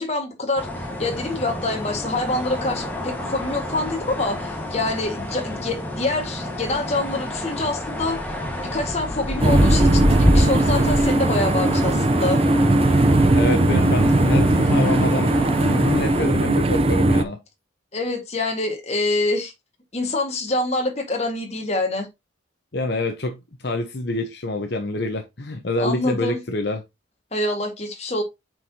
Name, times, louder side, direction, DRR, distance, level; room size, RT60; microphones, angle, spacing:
voice 1, 0.0-8.2 8.6-12.4 17.9-19.5 19.9-22.1 25.8-26.4 27.3-28.2, left 2 dB, 35° left, 1.7 m, -26 dB
sound 1, 0.6-16.3, left 1 dB, 10° left, 1.4 m, -27 dB
sound 2, 9.4-17.2, right 2 dB, 30° right, 0.5 m, -18 dB
voice 2, 13.3-17.4 22.7-26.8, left 2 dB, 55° left, 0.9 m, -26 dB
7.6 x 4.8 x 2.8 m
head